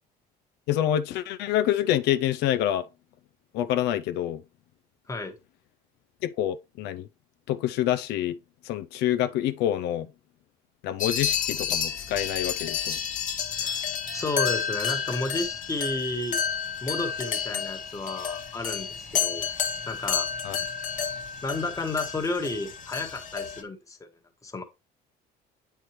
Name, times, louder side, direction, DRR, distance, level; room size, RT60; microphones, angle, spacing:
voice 1, 0.7-2.9 3.5-4.4 6.2-7.1 7.5-8.4 8.6-10.1 10.8-13.0 20.4-20.6, left 11 dB, 85° left, 0.4 m, -27 dB
sound 1, 11.0-23.6, left 7 dB, 50° left, 1.1 m, -30 dB
voice 2, 14.1-16.4 16.8-19.4 19.9-20.3 21.4-24.0 24.4-24.6, left 2 dB, 20° left, 1.2 m, -32 dB
8.1 x 4.5 x 3.0 m
cardioid pair, 110°, 17 cm